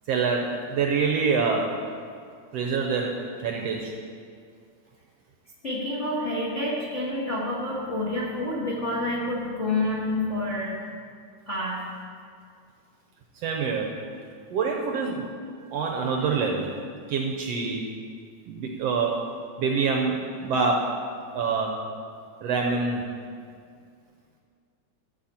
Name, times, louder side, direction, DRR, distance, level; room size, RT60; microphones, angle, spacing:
voice 1, 0.1-1.7 2.5-3.1 3.4-3.9 13.3-13.9 14.5-15.3 15.7-16.7 17.1-17.9 18.5-19.2 19.6-20.9 21.3-21.8 22.4-23.0, right 5 dB, 70° right, 1 dB, 1.6 m, -26 dB
voice 2, 5.6-10.8 11.5-11.8, left 1 dB, 35° left, -6 dB, 1.2 m, -28 dB
13.5 x 8.0 x 4.3 m, 2.2 s
omnidirectional pair, 3.4 m